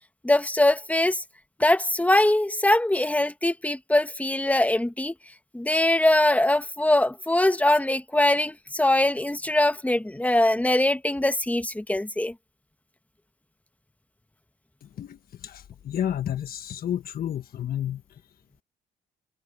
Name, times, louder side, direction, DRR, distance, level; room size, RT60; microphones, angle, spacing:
voice 1, 0.2-1.2 1.6-5.1 5.5-12.3, left 1 dB, 10° left, 1.5 m, -22 dB
voice 2, 15.4-18.0, left 10 dB, 60° left, 1.2 m, -30 dB
supercardioid pair, 70°, 17 cm